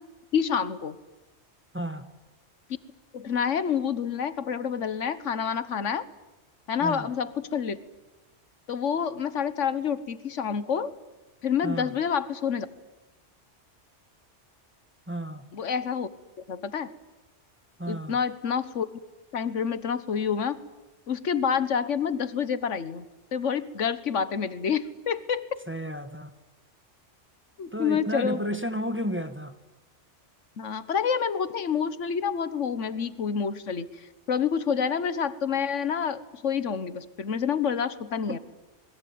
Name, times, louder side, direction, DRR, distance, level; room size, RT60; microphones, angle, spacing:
voice 1, 0.3-1.0 3.1-6.1 6.7-7.8 8.7-10.9 11.4-12.7 15.5-16.1 16.5-16.9 17.8-18.9 19.3-20.6 21.1-23.0 23.3-25.6 27.6-28.4 30.6-33.9 34.3-38.4, left 7 dB, 80° left, 1.5 m, -28 dB
voice 2, 1.7-2.1 6.8-7.1 11.6-11.9 15.1-15.5 17.8-18.2 25.7-26.3 27.7-29.5 38.3-38.4, equal, 10° right, 1.3 m, -32 dB
27.0 x 21.0 x 9.5 m
omnidirectional pair, 1.2 m